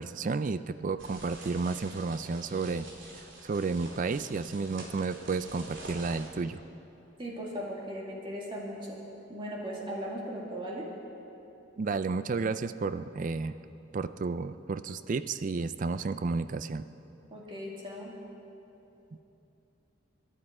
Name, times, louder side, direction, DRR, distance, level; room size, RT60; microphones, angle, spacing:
voice 1, 0.0-2.9 3.1-6.6 11.8-13.5 13.9-16.8, right 4 dB, 40° right, 13 dB, 0.3 m, -32 dB
sound 1, 1.0-6.3, right 1 dB, 70° right, 2.9 m, -47 dB
voice 2, 7.2-9.0 9.3-10.9 17.3-18.1, equal, 25° right, -3 dB, 2.1 m, -38 dB
25.0 x 11.0 x 4.8 m, 3.0 s
head